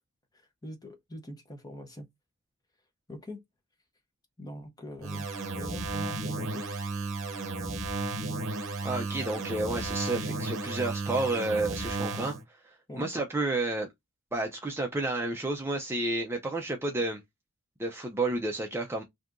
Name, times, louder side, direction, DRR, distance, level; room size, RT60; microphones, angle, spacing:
voice 1, 0.3-2.1 3.1-3.4 4.4-5.3 5.5-6.9 12.9-13.1, left 1 dB, 15° left, 0.7 m, -43 dB
sound 1, 5.0-12.4, right 3 dB, 60° right, 0.8 m, -34 dB
voice 2, 8.8-13.9 14.3-17.2 17.8-19.0, right 2 dB, 10° right, 0.4 m, -31 dB
2.7 x 2.5 x 3.4 m
head